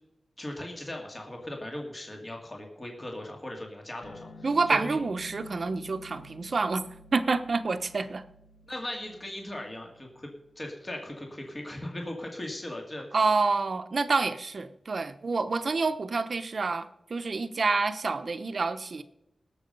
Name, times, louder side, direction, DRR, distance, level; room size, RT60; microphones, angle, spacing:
voice 1, 0.4-5.0 8.7-13.0, left 1 dB, 30° left, 1 dB, 2.5 m, -38 dB
sound 1, 4.0-10.8, left 2 dB, 85° left, 2.2 m, -51 dB
voice 2, 4.4-8.2 13.1-19.0, right 4 dB, 60° right, 11 dB, 0.9 m, -28 dB
18.5 x 7.1 x 5.4 m, 0.90 s
wide cardioid pair, 70°, 0 cm